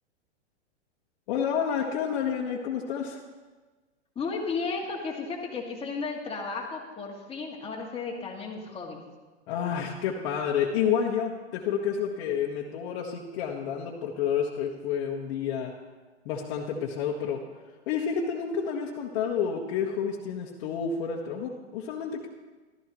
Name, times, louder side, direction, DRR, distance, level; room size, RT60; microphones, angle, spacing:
voice 1, 1.3-3.2 9.5-15.7 16.2-17.4 17.9-22.3, left 7 dB, 50° left, -3 dB, 1.5 m, -29 dB
voice 2, 4.2-9.0, left 4 dB, 15° left, -1 dB, 2.2 m, -34 dB
15.5 x 13.0 x 3.1 m, 1.3 s
hypercardioid pair, 125°, 34 cm